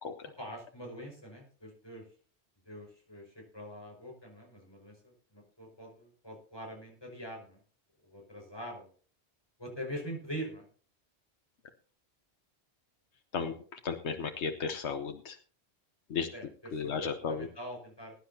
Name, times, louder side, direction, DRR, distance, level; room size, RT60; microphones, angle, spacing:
voice 1, 0.4-2.0 2.7-7.6 8.0-8.9 9.6-10.6 16.3-18.1, equal, 20° left, 0 dB, 5.2 m, -44 dB
voice 2, 13.8-15.4 16.1-16.3 16.7-17.5, left 5 dB, 85° left, 6 dB, 1.2 m, -34 dB
21.0 x 10.0 x 2.8 m, 0.43 s
omnidirectional pair, 1.1 m